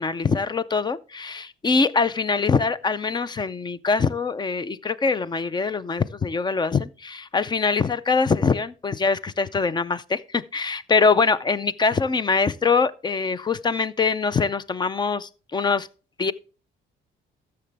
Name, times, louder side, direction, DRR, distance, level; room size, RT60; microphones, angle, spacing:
voice 1, 0.0-15.9 16.2-16.3, left 4 dB, 20° left, 0.4 m, -23 dB
14.0 x 6.7 x 3.3 m
cardioid pair, 140°, 21 cm